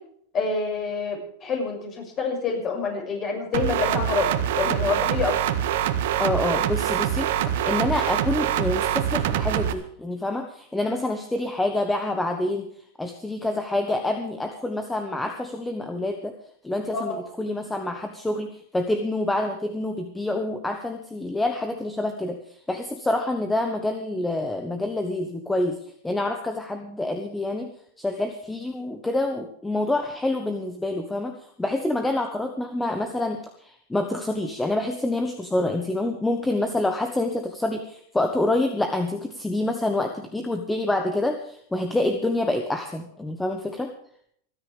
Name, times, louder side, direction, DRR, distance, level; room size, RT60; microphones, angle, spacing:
voice 1, 0.3-4.3 4.5-5.4 16.9-17.2, left 4 dB, 30° left, 1 dB, 6.5 m, -27 dB
sound 1, 3.5-9.7, right 10 dB, 70° right, 1.7 m, -24 dB
voice 2, 6.2-7.3 7.6-12.7 13.0-16.3 16.6-27.7 28.0-43.9, left 2 dB, 5° left, 5 dB, 1.3 m, -27 dB
28.0 x 9.8 x 3.5 m, 0.65 s
supercardioid pair, 150°, 0 cm